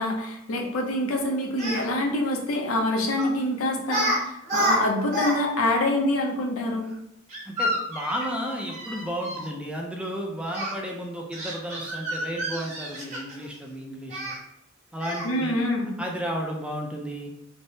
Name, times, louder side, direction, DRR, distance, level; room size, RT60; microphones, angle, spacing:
voice 1, 0.0-6.9 15.2-15.9, left 1 dB, 90° left, 2 dB, 0.5 m, -26 dB
Speech, 1.6-1.8 3.2-3.4 3.8-4.2 4.4-5.4 5.6-5.7 7.3-9.4 10.5-10.7 11.3-13.5 14.1-14.4 15.0-15.3, equal, 35° right, 1.1 m, -29 dB
voice 2, 7.5-14.3 14.9-15.6 16.0-17.3, equal, 5° right, 0 dB, 0.4 m, -33 dB
3.3 x 2.0 x 2.6 m, 0.82 s
head